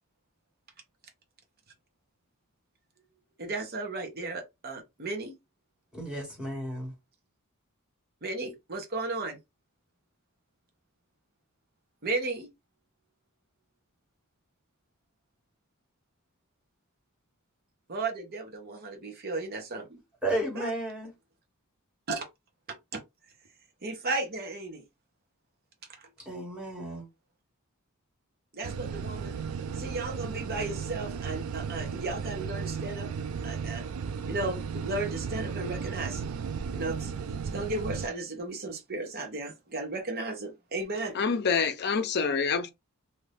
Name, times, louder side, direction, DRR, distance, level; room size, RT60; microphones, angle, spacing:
voice 1, 3.4-5.4 8.2-9.4 12.0-12.5 17.9-20.0 20.5-20.7 22.1-22.3 22.7-23.0 23.8-24.8 28.5-29.3 29.8-33.1 33.4-33.8 34.3-36.3 36.7-37.1 37.5-41.2, right 2 dB, 45° right, 0.9 m, -34 dB
voice 2, 5.9-6.9 20.2-21.1 26.2-27.1, right 1 dB, 5° right, 1.4 m, -33 dB
sound 1, 28.6-38.1, right 6 dB, 70° right, 0.4 m, -35 dB
voice 3, 41.1-42.7, left 5 dB, 50° left, 0.6 m, -26 dB
2.8 x 2.5 x 3.4 m
head